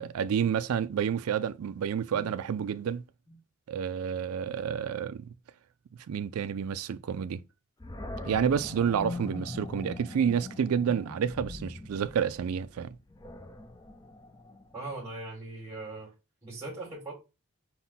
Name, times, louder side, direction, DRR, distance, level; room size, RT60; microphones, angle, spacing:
voice 1, 0.0-3.0 3.7-5.3 6.1-7.4 8.2-12.9, right 7 dB, 80° right, 0.3 m, -29 dB
Animal, 7.8-14.9, left 2 dB, 15° left, 0.4 m, -42 dB
voice 2, 14.7-16.1 16.4-17.1, right 2 dB, 10° right, 1.5 m, -40 dB
5.5 x 2.2 x 3.9 m
head